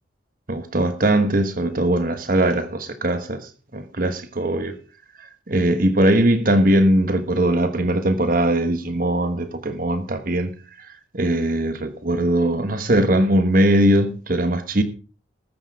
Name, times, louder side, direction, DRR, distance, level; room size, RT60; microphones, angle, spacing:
voice 1, 0.5-4.8 5.5-10.5 10.8-10.9 11.1-14.8, right 1 dB, 45° right, 1.3 m, -20 dB
13.5 x 13.5 x 3.6 m
head